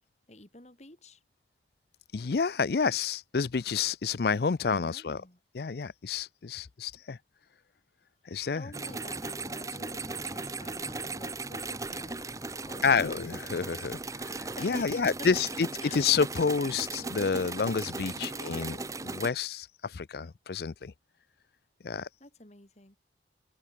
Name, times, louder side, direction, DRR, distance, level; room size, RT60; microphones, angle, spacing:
voice 1, 0.3-1.2 4.6-5.4 8.5-13.2 14.6-15.3 15.8-16.1 17.0-17.1 18.1-19.2 22.2-23.0, left 2 dB, 40° left, 2.5 m, -49 dB
voice 2, 2.1-5.2 5.5-7.2 8.2-8.7 12.8-18.8 19.0-20.9 21.8-22.1, left 5 dB, 55° left, 0.5 m, -29 dB
sound 1, 8.7-19.3, right 3 dB, 20° right, 1.0 m, -37 dB
open air
head